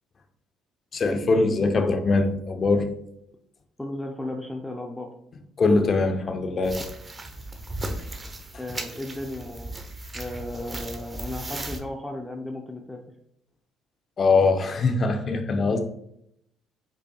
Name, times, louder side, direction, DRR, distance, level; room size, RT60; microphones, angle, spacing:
voice 1, 0.9-3.0 5.6-6.9 14.2-15.8, left 3 dB, 40° left, 0.7 m, -22 dB
voice 2, 3.8-5.1 8.6-9.8 10.1-13.0, left 1 dB, 10° left, 0.6 m, -35 dB
sound 1, 6.6-11.8, right 1 dB, 25° right, 0.9 m, -36 dB
5.4 x 4.2 x 2.3 m
supercardioid pair, 75°, 0 cm